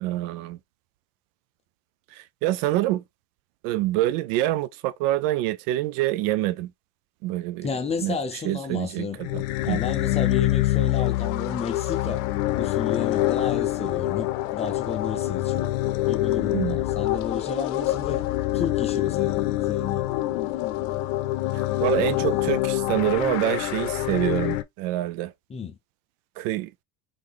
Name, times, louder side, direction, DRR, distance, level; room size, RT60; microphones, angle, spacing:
voice 1, 0.0-0.6 2.1-3.0 3.6-6.7 7.2-7.7 8.0-9.8 16.5-16.8 21.5-25.3 26.4-26.7, right 15 dB, 85° right, 0.6 m, -26 dB
voice 2, 7.6-9.2 9.6-12.2 12.5-18.3 18.5-20.1 25.5-25.8, left 5 dB, 15° left, 0.3 m, -32 dB
sound 1, 9.2-24.6, left 16 dB, 90° left, 0.6 m, -25 dB
3.7 x 3.5 x 3.3 m
cardioid pair, 155°, 45 cm